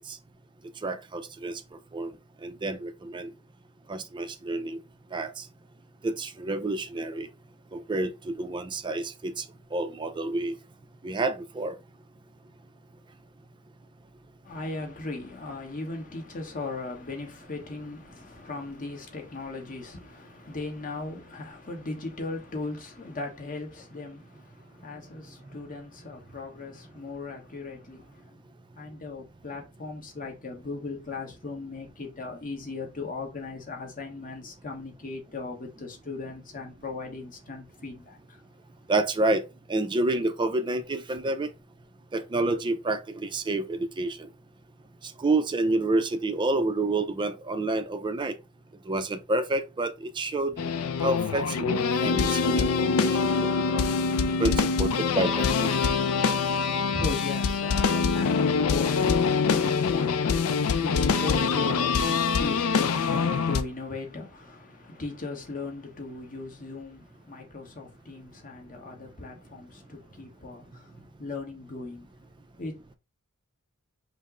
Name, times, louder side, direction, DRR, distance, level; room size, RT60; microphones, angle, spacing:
voice 1, 0.8-1.6 1.9-2.1 2.4-3.3 3.9-4.8 5.1-5.4 6.0-7.3 7.7-9.4 9.7-10.5 11.0-11.7 38.9-39.4 39.7-41.5 42.1-44.3 45.0-48.3 48.9-50.5 51.0-53.8 54.4-55.8, right 2 dB, 20° right, 0.4 m, -29 dB
voice 2, 14.4-28.4 28.7-38.4 56.4-72.1 72.6-73.0, left 3 dB, 40° left, 1.1 m, -38 dB
sound 1, 50.6-63.6, left 5 dB, 70° left, 0.4 m, -24 dB
5.2 x 2.0 x 3.7 m
head